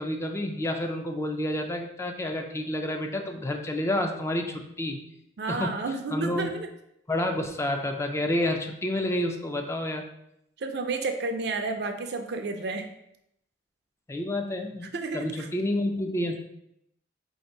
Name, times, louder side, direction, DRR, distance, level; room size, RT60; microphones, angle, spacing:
voice 1, 0.0-5.0 5.5-6.5 7.1-10.0 14.1-16.4, left 1 dB, 15° left, 4 dB, 0.4 m, -29 dB
voice 2, 5.4-6.7 10.6-12.9 14.9-15.5, right 3 dB, 65° right, 6 dB, 0.5 m, -31 dB
3.3 x 2.7 x 4.4 m, 0.79 s
head